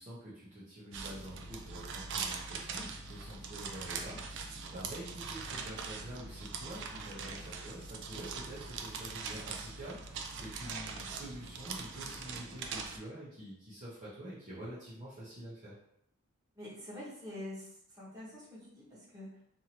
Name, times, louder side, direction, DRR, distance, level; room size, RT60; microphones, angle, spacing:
voice 1, 0.0-15.7, right 1 dB, 35° right, -10 dB, 0.8 m, -47 dB
sound 1, 0.9-13.0, right 5 dB, 55° right, 0.3 m, -42 dB
voice 2, 16.6-19.3, left 1 dB, 15° right, -9 dB, 1.1 m, -46 dB
2.8 x 2.6 x 2.9 m, 0.75 s
head